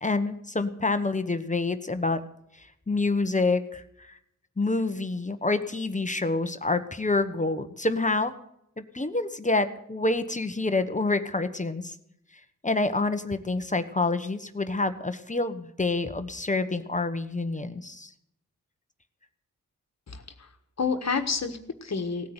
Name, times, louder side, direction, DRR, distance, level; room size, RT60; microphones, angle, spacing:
voice 1, 0.0-2.2 2.6-4.2 4.6-8.3 8.8-11.9 12.6-18.1, left 3 dB, 25° left, 9 dB, 1.2 m, -27 dB
voice 2, 20.1-20.5 20.8-22.3, left 5 dB, 55° left, 6 dB, 1.6 m, -29 dB
18.0 x 9.5 x 8.0 m, 0.76 s
wide cardioid pair, 75°, 31 cm